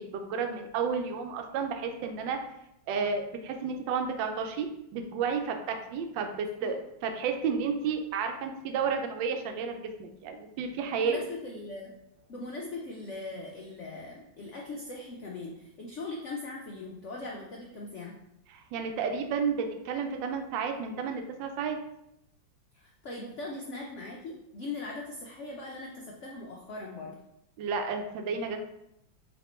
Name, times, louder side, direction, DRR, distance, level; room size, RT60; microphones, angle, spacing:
voice 1, 0.0-2.4 2.9-11.2 18.5-21.8 27.6-28.6, right 5 dB, 80° right, 5 dB, 1.3 m, -32 dB
voice 2, 10.9-11.9 12.3-18.2 22.7-27.2, left 2 dB, 85° left, -1 dB, 0.6 m, -40 dB
4.3 x 2.9 x 4.2 m, 0.82 s
omnidirectional pair, 2.1 m